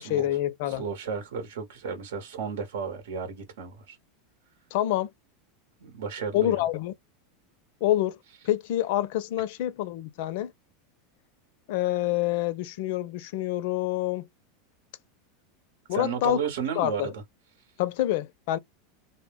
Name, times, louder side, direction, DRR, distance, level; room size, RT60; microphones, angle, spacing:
voice 1, 0.0-0.8 4.7-5.1 6.3-6.9 7.8-8.2 8.4-10.5 11.7-14.3 15.9-16.4 16.8-17.1 17.8-18.6, left 14 dB, 60° left, 0.4 m, -27 dB
voice 2, 0.7-4.0 5.8-6.5 15.9-17.2, right 6 dB, 85° right, 0.9 m, -33 dB
2.1 x 2.0 x 3.3 m
supercardioid pair, 150°, 0 cm